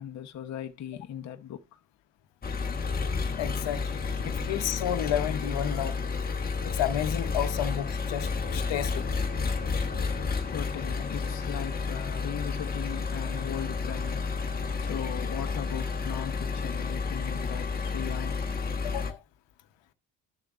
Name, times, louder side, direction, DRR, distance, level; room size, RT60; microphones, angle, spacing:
voice 1, 0.0-1.6 4.2-4.7 5.0-5.2 10.5-14.2 14.8-18.4, left 10 dB, 40° left, 0.8 m, -38 dB
Engine, 2.4-19.1, left 4 dB, 20° left, 1.1 m, -31 dB
voice 2, 3.4-3.8 4.2-6.0 6.6-9.2 18.8-19.2, left 11 dB, 80° left, 0.9 m, -31 dB
12.5 x 7.0 x 2.4 m
cardioid pair, 180°, 43 cm